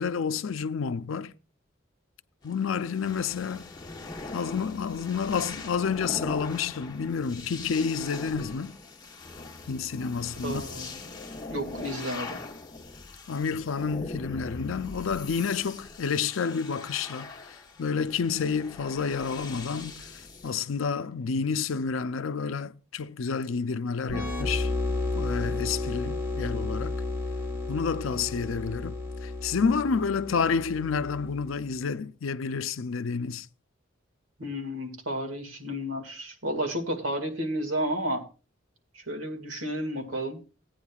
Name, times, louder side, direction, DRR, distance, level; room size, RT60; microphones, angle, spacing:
voice 1, 0.0-1.3 2.4-3.7 4.3-8.7 9.7-10.6 13.3-20.1 20.4-24.7 25.2-26.9 27.7-33.5, left 5 dB, 85° left, 0.5 m, -29 dB
sound 1, 2.4-20.5, left 3 dB, 20° left, 0.9 m, -41 dB
voice 2, 10.4-11.2 11.5-12.4 34.4-38.2 38.9-40.4, equal, 85° right, 2.0 m, -32 dB
sound 2, 24.1-31.6, left 2 dB, 15° right, 1.0 m, -32 dB
16.5 x 9.1 x 2.3 m
head